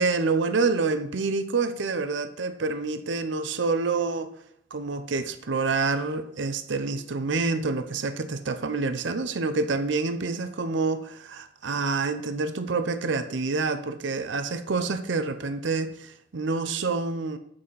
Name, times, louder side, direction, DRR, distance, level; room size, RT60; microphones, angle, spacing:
voice 1, 0.0-4.3 4.7-17.4, right 4 dB, 65° right, 0.6 m, -27 dB
7.8 x 5.6 x 4.1 m
head